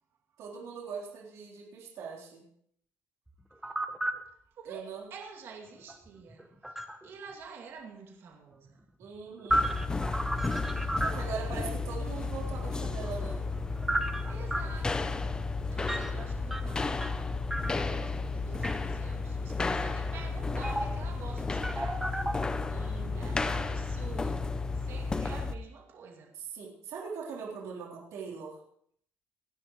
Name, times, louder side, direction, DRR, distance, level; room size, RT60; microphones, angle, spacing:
voice 1, 0.4-2.4 4.7-5.1 9.0-9.7 11.0-13.4 22.7-23.4 26.4-28.6, right 5 dB, 85° right, 3.7 m, -41 dB
sound 1, 3.3-4.2 5.9-7.1 9.0-11.5 12.9-14.7 15.8-16.1 16.5-17.2 17.5-18.1 18.6-18.7 20.6-21.1 21.4-22.3, right 1 dB, 5° right, 0.9 m, -32 dB
voice 2, 4.5-8.8 10.9-11.6 12.8-12.9 14.3-15.2 15.6-17.1 17.6-22.1 23.2-24.5 24.7-26.4, right 5 dB, 55° right, 2.5 m, -48 dB
sound 2, 9.5-25.6, left 3 dB, 15° left, 0.6 m, -33 dB
28.5 x 10.5 x 3.1 m
cardioid pair, 170°, 5 cm